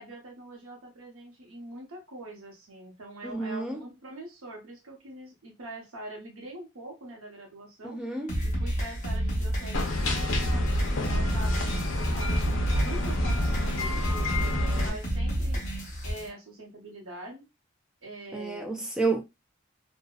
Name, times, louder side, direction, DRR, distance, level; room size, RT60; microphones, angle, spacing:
voice 1, 0.0-8.0 8.4-11.6 11.9-12.5 12.8-15.6 16.0-17.5 18.0-18.7, right 1 dB, 85° right, 0.9 m, -44 dB
voice 2, 3.2-3.8 7.8-8.3 14.4-14.9 18.3-19.2, right 3 dB, 5° right, 0.3 m, -31 dB
sound 1, 8.3-16.3, equal, 35° left, 0.8 m, -30 dB
sound 2, 9.7-14.9, left 1 dB, 75° left, 0.6 m, -29 dB
2.6 x 2.0 x 2.3 m
head